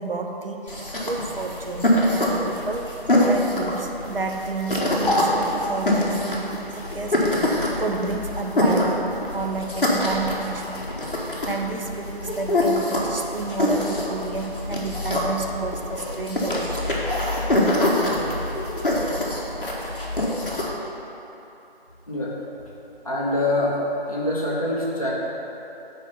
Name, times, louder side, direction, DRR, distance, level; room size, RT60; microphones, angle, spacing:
voice 1, 0.0-2.9 3.2-10.9 11.5-16.8, right 3 dB, 65° right, 3 dB, 0.8 m, -31 dB
sound 1, 0.7-20.7, left 1 dB, 60° left, 1.4 m, -24 dB
voice 2, 23.0-23.7 24.1-25.1, left 1 dB, 35° left, -6 dB, 1.3 m, -24 dB
9.4 x 3.3 x 5.5 m, 3.0 s
figure-of-eight pair, 175°, 31 cm